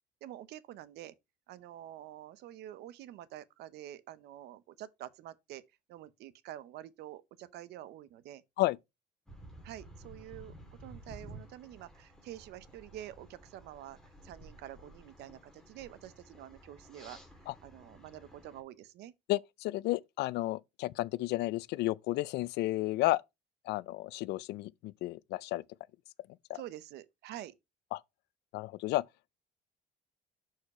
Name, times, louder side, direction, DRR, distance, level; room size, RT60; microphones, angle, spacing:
voice 1, 0.2-1.2 1.5-5.6 5.9-8.4 9.6-14.0 14.2-17.2 17.6-19.1 26.5-27.5, right 12 dB, 80° right, 0.7 m, -47 dB
sound 1, 9.3-18.6, right 1 dB, 5° left, 2.6 m, -53 dB
voice 2, 19.3-23.2 23.7-25.6 26.5-26.6 27.9-28.0 28.5-29.0, left 17 dB, 80° left, 0.4 m, -32 dB
6.6 x 4.7 x 4.1 m
cardioid pair, 110°, 17 cm